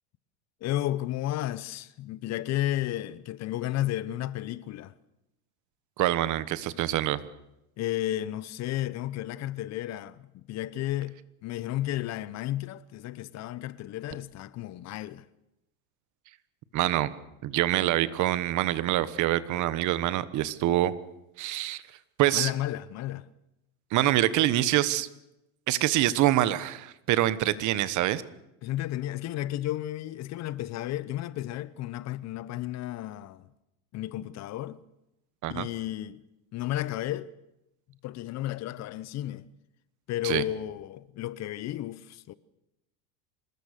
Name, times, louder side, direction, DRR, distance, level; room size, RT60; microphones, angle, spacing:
voice 1, 0.6-4.9 7.8-15.2 22.3-23.3 28.6-33.5 33.9-34.8 35.5-36.2 36.5-37.3 38.0-39.5 40.1-42.3, left 14 dB, 40° left, 0.9 m, -33 dB
voice 2, 6.0-7.2 16.7-17.1 17.4-20.9 21.4-21.8 22.2-22.5 23.9-25.1 25.7-28.2 35.4-35.7 40.2-40.4, right 14 dB, 45° right, 1.3 m, -25 dB
26.0 x 20.5 x 6.7 m
supercardioid pair, 135°, 41 cm